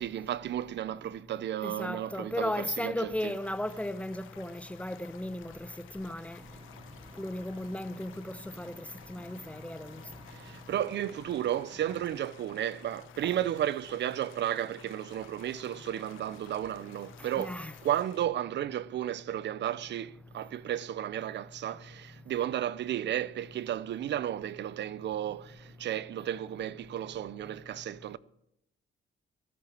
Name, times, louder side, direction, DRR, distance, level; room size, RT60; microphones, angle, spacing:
voice 1, 0.0-3.3 10.3-28.2, right 11 dB, 65° right, 0.6 m, -33 dB
voice 2, 1.6-6.4 7.2-8.7 9.1-10.0 13.2-13.3 17.4-17.7, left 1 dB, 5° left, 0.7 m, -35 dB
sound 1, 3.2-18.2, left 11 dB, 85° left, 1.2 m, -54 dB
Vehicle, 6.4-12.1, right 2 dB, 25° right, 2.1 m, -54 dB
14.5 x 8.6 x 7.5 m
cardioid pair, 90°, 20 cm